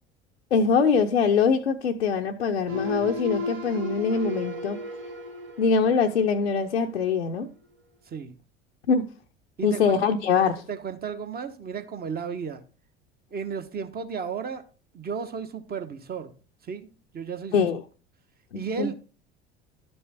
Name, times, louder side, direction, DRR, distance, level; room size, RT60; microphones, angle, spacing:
voice 1, 0.5-4.8 5.6-7.5 8.9-9.1 9.6-10.6 17.5-17.8 18.5-18.9, left 5 dB, 80° left, 0.7 m, -23 dB
sound 1, 2.7-6.6 7.0-7.3, left 2 dB, 70° right, 1.8 m, -34 dB
voice 2, 8.1-8.4 9.6-10.0 10.7-12.6 13.3-14.6 14.9-16.3 16.6-17.7 18.5-18.9, right 6 dB, 30° right, 1.2 m, -34 dB
12.0 x 5.4 x 4.3 m
figure-of-eight pair, 65°, 32 cm